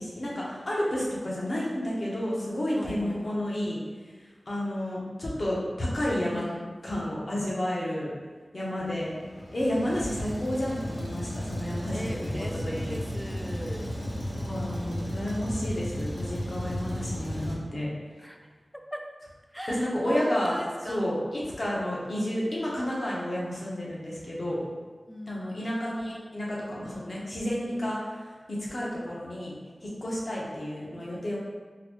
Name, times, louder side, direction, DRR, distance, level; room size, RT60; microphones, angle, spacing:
voice 1, 0.0-4.1 4.5-6.4 6.8-8.1 8.5-9.1 9.5-13.0 14.4-17.9 19.7-20.6 20.8-24.6 25.3-28.0 28.5-29.5 29.8-31.4, left 1 dB, 55° left, -5 dB, 0.8 m, -31 dB
voice 2, 2.7-3.4 6.3-6.8 11.9-13.9 18.2-18.4 18.9-19.0 19.5-21.0 25.1-25.5, equal, ahead, 3 dB, 0.3 m, -39 dB
Truck, 8.8-17.6, equal, 90° left, 0.8 m, -34 dB
3.8 x 2.1 x 2.9 m, 1.4 s
wide cardioid pair, 80°, 0 cm